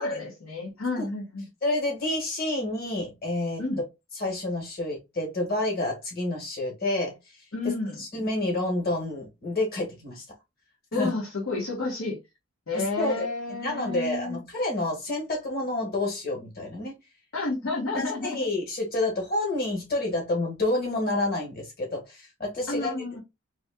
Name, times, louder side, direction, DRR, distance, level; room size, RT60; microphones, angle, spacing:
voice 1, 0.0-1.5 3.6-3.8 7.5-8.0 10.9-12.2 12.7-14.4 17.3-18.5 22.7-23.2, left 3 dB, 75° left, 1.2 m, -31 dB
voice 2, 1.6-3.6 4.2-7.3 7.6-7.7 8.0-10.2 10.9-11.1 12.7-13.3 13.6-17.0 17.9-22.9, left 2 dB, 45° left, 1.5 m, -29 dB
4.1 x 2.9 x 2.2 m
head